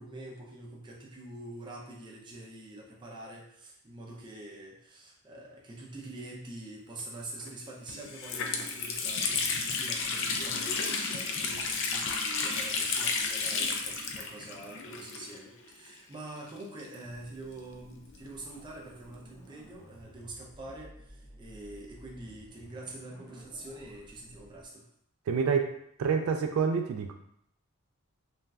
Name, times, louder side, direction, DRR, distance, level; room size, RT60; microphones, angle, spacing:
voice 1, 0.0-24.9, right 2 dB, 20° right, -2 dB, 0.5 m, -45 dB
Water tap faucet, 7.4-7.5 7.9-15.6 15.9-16.0 16.8-18.3, left 4 dB, 60° left, 0.4 m, -32 dB
sound 1, 17.0-24.6, right 1 dB, 15° left, 0.9 m, -54 dB
voice 2, 25.3-25.7 26.0-27.1, right 6 dB, 75° right, 4 dB, 0.3 m, -27 dB
2.5 x 2.2 x 3.2 m, 0.72 s
head